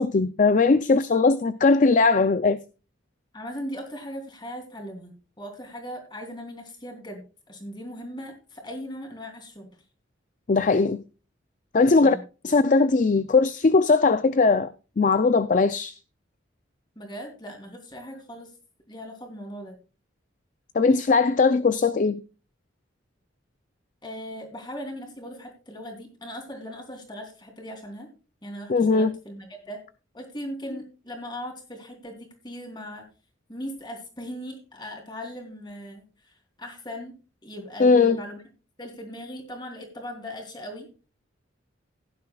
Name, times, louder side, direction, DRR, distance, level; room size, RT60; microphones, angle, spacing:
voice 1, 0.0-2.6 10.5-11.0 11.7-12.2 12.4-16.0 20.8-22.2 28.7-29.2 37.8-38.2, left 4 dB, 40° left, 0.4 m, -20 dB
voice 2, 3.3-9.7 11.9-12.2 17.0-18.5 18.9-19.7 24.0-28.1 28.4-29.8 30.1-33.1 33.5-36.0 36.6-37.1 37.4-38.4 38.8-40.9, equal, 20° left, 3.1 m, -38 dB
16.0 x 10.5 x 2.3 m
head